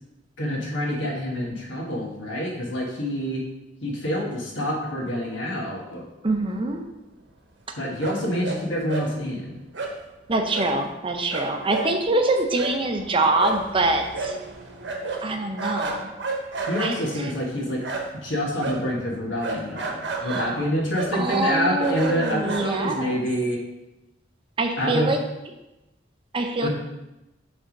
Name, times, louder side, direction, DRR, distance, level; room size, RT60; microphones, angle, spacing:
voice 1, 0.4-3.4 3.8-6.0 7.8-9.5 16.7-17.8 18.2-23.6 24.8-25.1 26.6-26.7, equal, 75° left, -1 dB, 1.5 m, -27 dB
voice 2, 6.2-6.9 10.3-14.4 15.2-16.1 16.8-17.3 20.2-20.6 21.1-23.2 24.6-25.2 26.3-26.7, right 2 dB, 30° right, 4 dB, 0.6 m, -25 dB
sound 1, 8.0-8.6 8.9-9.1 9.7-9.9 10.5-10.7 11.0-11.1 11.3-18.3 18.6-23.1, right 3 dB, 70° right, 1.0 m, -32 dB
6.4 x 3.5 x 5.2 m, 0.96 s
head